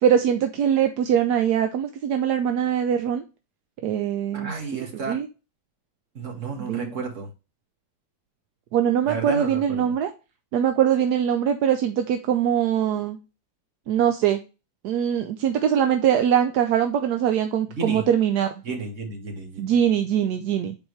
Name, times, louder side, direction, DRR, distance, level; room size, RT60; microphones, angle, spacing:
voice 1, 0.0-3.2 3.8-5.3 6.6-6.9 8.7-10.1 10.5-13.2 13.9-14.4 14.8-18.5 19.6-20.8, right 9 dB, 70° right, 7 dB, 1.1 m, -22 dB
voice 2, 4.3-5.2 6.2-7.3 9.0-9.9 17.7-18.0 18.6-19.7, right 4 dB, 40° right, 1 dB, 2.0 m, -32 dB
7.2 x 4.4 x 3.2 m, 0.30 s
omnidirectional pair, 2.1 m